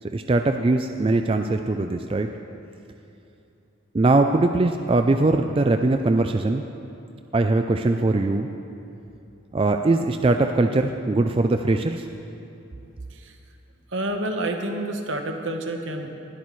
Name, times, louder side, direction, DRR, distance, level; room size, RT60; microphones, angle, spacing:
voice 1, 0.1-2.3 3.9-6.6 7.3-8.5 9.5-12.0, right 2 dB, 25° right, 6 dB, 0.3 m, -21 dB
voice 2, 13.9-16.1, right 1 dB, 70° right, 4 dB, 1.2 m, -29 dB
20.5 x 12.5 x 3.2 m, 2.8 s
head